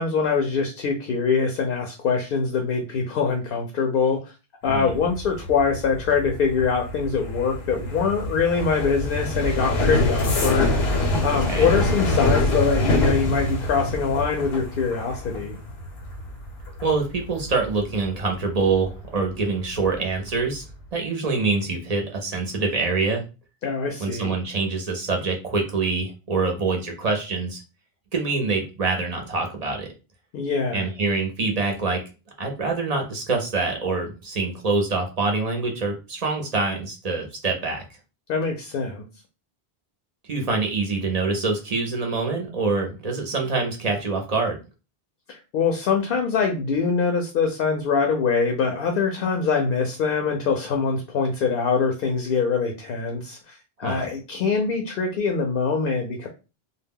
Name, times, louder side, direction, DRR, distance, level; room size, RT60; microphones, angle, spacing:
voice 1, 0.0-4.3 4.6-10.8 11.2-15.6 23.6-24.3 30.3-30.8 38.3-39.0 45.3-56.3, left 5 dB, 65° left, 3 dB, 0.7 m, -23 dB
sound 1, 4.7-19.3 19.6-20.1 20.3-20.7, left 1 dB, 90° left, 1.0 m, -26 dB
voice 2, 16.8-20.6 20.9-23.2 24.0-27.6 28.1-29.9 30.7-32.0 32.4-37.8 40.3-44.6 53.8-54.1, right 3 dB, 45° right, 3 dB, 0.6 m, -25 dB
2.1 x 2.1 x 3.5 m, 0.31 s
omnidirectional pair, 1.0 m